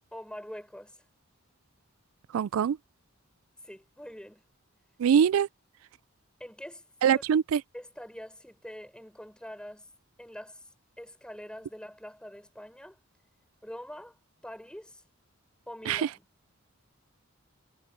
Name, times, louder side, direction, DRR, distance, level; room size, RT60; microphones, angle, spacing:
voice 1, 0.1-1.0 3.6-4.4 6.4-6.8 7.1-7.2 7.7-9.9 10.2-10.6 11.0-13.0 13.6-14.2 14.4-15.0 15.7-16.3, equal, 5° left, 6.5 m, -44 dB
voice 2, 2.3-2.8 5.0-5.5 7.0-7.6 15.9-16.0, right 8 dB, 85° right, 0.3 m, -23 dB
head